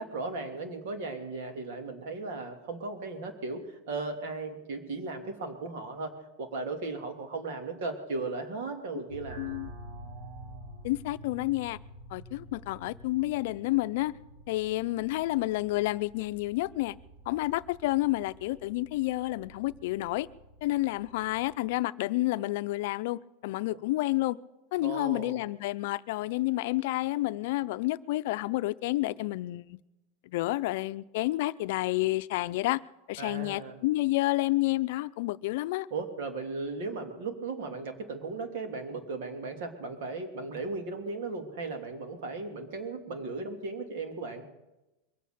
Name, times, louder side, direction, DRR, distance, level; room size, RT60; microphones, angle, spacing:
voice 1, 0.0-9.4 23.7-23.8 24.8-25.4 33.2-33.8 35.9-44.4, right 3 dB, 70° right, 5 dB, 3.0 m, -36 dB
sound 1, 9.1-21.6, right 1 dB, 50° right, 3.4 m, -49 dB
voice 2, 9.4-9.7 10.8-11.8 12.1-14.1 14.5-16.9 17.3-20.3 20.6-24.4 24.7-29.8 30.3-32.8 33.1-35.9, left 18 dB, 65° left, 14 dB, 0.5 m, -30 dB
22.5 x 8.6 x 6.9 m, 0.98 s
supercardioid pair, 150°, 0 cm